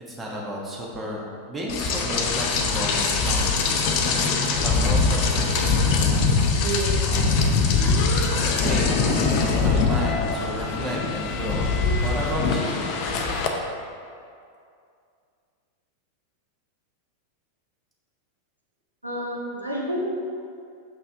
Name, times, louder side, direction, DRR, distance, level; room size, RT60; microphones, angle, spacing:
voice 1, 0.1-6.2 8.4-11.7 12.0-12.9, equal, 15° right, -3 dB, 1.3 m, -32 dB
Rain, 1.7-13.5, left 4 dB, 45° left, 0.7 m, -22 dB
voice 2, 6.6-6.9 19.0-20.0, right 1 dB, 85° right, -3 dB, 1.1 m, -29 dB
6.4 x 5.5 x 3.6 m, 2.4 s
figure-of-eight pair, 90°, 0 cm